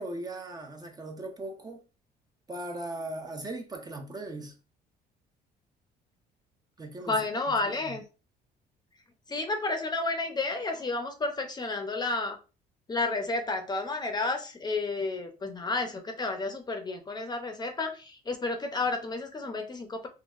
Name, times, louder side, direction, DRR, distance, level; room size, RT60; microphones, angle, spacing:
voice 1, 0.0-1.8 2.5-4.5 6.8-7.2 7.5-7.6 7.9-8.0, right 2 dB, 25° right, 0.5 m, -38 dB
voice 2, 7.1-8.0 9.3-12.4 12.9-20.1, left 3 dB, 25° left, 0.6 m, -31 dB
3.8 x 2.2 x 2.4 m
cardioid pair, 110°, 17 cm